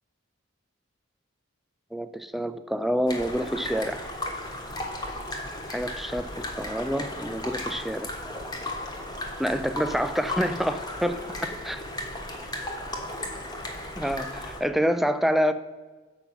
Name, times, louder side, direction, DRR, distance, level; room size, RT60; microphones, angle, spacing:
voice 1, 1.9-4.1 5.7-8.5 9.4-11.8 14.0-15.5, equal, ahead, 11 dB, 0.3 m, -28 dB
sound 1, 3.1-14.6, left 1 dB, 20° left, 1.2 m, -35 dB
7.4 x 5.3 x 6.0 m, 1.3 s
head